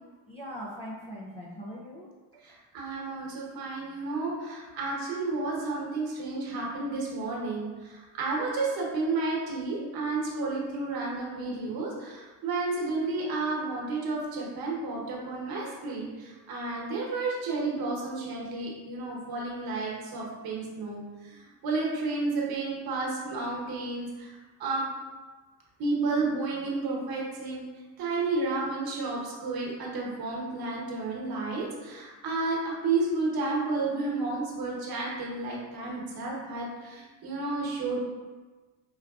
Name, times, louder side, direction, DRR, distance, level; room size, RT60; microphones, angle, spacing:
voice 1, 0.3-2.4, equal, 15° left, -7 dB, 0.3 m, -41 dB
voice 2, 2.4-24.3 24.6-24.9 25.8-27.6 28.0-38.0, right 3 dB, 55° right, -3 dB, 1.2 m, -31 dB
4.6 x 3.4 x 2.4 m, 1.3 s
cardioid pair, 160°, 45 cm